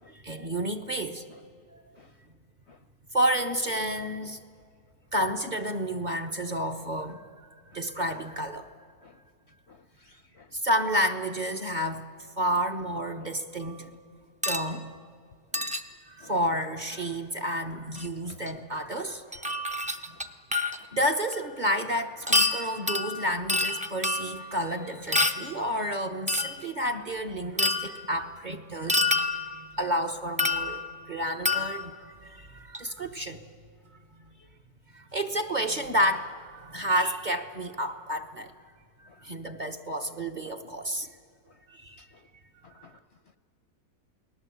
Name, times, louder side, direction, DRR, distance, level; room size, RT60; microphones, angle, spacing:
voice 1, 0.1-1.2 1.7-1.8 3.1-4.4 5.1-7.3 7.7-8.7 10.5-12.0 12.4-13.8 14.4-14.9 16.1-19.4 20.9-33.4 33.8-34.0 34.9-38.5 39.0-41.1 41.7-42.1 42.8-42.9, equal, 30° right, 4 dB, 1.2 m, -30 dB
voice 2, 9.7-10.5 13.2-13.3 15.5-15.7 16.2-16.3 18.3-18.4 19.5-19.6 36.7-36.8 40.4-40.5 42.1-42.2 42.6-43.0, left 5 dB, 50° left, 10 dB, 0.9 m, -54 dB
sound 1, 14.4-14.7 15.5-15.8 18.0-18.1 18.5-18.6 19.3-20.9 21.3-21.4 22.3-24.5 25.1-25.5 26.3-26.7 27.6-28.1 28.9-29.7 30.4-31.0 31.5-32.0 32.7-32.8, left 2 dB, 5° right, 0.8 m, -27 dB
29.0 x 19.5 x 8.3 m, 2.1 s
omnidirectional pair, 1.7 m